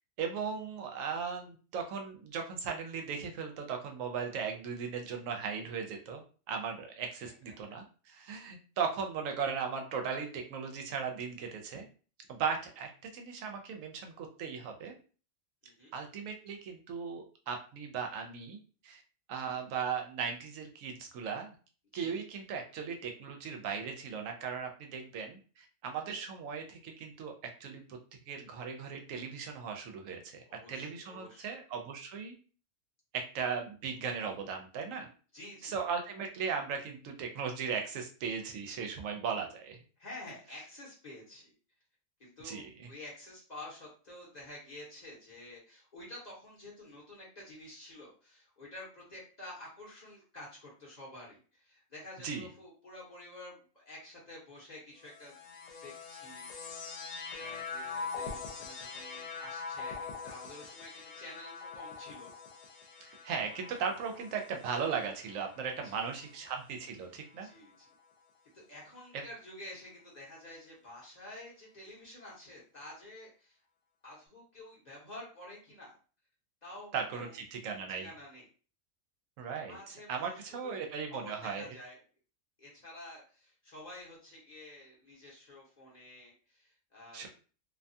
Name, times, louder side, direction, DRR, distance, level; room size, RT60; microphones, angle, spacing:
voice 1, 0.2-6.2 6.5-11.9 12.3-14.9 15.9-18.6 18.8-19.0 19.3-21.5 21.9-27.3 27.6-28.0 28.3-30.4 30.7-32.3 33.1-35.1 35.6-39.8 42.4-42.9 52.2-52.5 63.0-67.5 76.9-78.1 79.4-81.6 87.1-87.3, right 6 dB, 75° right, 4 dB, 0.9 m, -37 dB
voice 2, 15.6-15.9 19.5-19.6 21.9-22.2 30.4-31.5 35.3-35.7 40.0-41.5 42.2-55.4 55.8-57.0 57.3-62.3 62.6-62.9 65.8-66.1 67.4-67.9 68.5-73.6 74.0-76.0 76.6-77.4 77.9-78.5 79.7-80.8 81.1-82.0 82.6-87.3, left 1 dB, 35° left, -4 dB, 0.8 m, -50 dB
sound 1, 55.0-66.5 67.3-68.0, left 5 dB, 80° left, 1.0 m, -44 dB
2.6 x 2.2 x 2.6 m, 0.38 s
omnidirectional pair, 1.4 m